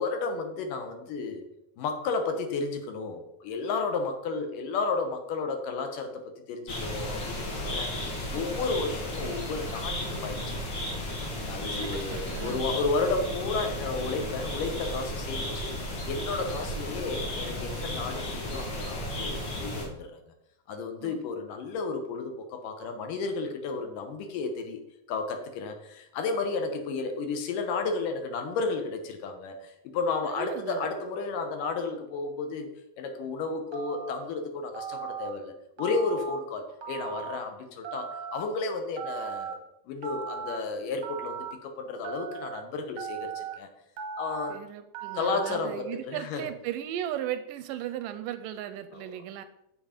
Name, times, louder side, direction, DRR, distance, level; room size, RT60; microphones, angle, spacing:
voice 1, 0.0-1.4 1.8-6.2 6.5-10.8 11.5-15.7 16.1-20.2 20.7-24.8 25.1-32.7 33.0-39.6 39.9-43.7 44.2-44.6 45.1-46.5 48.9-49.2, left 4 dB, 75° left, 5 dB, 2.6 m, -32 dB
sound 1, 6.7-19.9, left 1 dB, 40° left, 2.1 m, -34 dB
voice 2, 11.7-12.7 21.0-21.2 30.2-30.8 44.5-49.4, right 11 dB, 80° right, 10 dB, 2.0 m, -36 dB
Telephone, 33.7-34.2 34.7-35.3 35.8-36.4 36.8-37.4 37.8-38.4 39.0-39.5 40.0-40.6 41.0-41.5 42.0-42.6 43.0-43.5 44.0-44.5 44.9-45.5, right 7 dB, 60° right, 1.2 m, -37 dB
8.1 x 7.5 x 5.1 m, 0.85 s
omnidirectional pair, 4.0 m